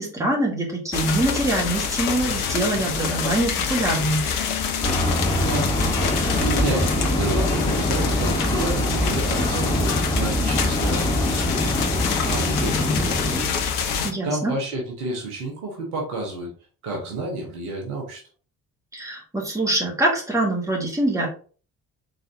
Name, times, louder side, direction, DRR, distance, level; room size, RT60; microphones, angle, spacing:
voice 1, 0.0-4.2 14.0-14.5 18.9-21.3, right 1 dB, 5° right, -1 dB, 1.5 m, -24 dB
sound 1, 0.9-14.1, left 6 dB, 75° left, 0.7 m, -26 dB
sound 2, 4.8-13.4, left 1 dB, 10° left, 1.1 m, -24 dB
voice 2, 5.4-5.7 6.0-11.8 12.3-13.6 14.2-16.5 16.8-18.2, right 2 dB, 70° right, -1 dB, 1.4 m, -30 dB
3.9 x 3.9 x 2.7 m, 0.39 s
figure-of-eight pair, 45°, 46 cm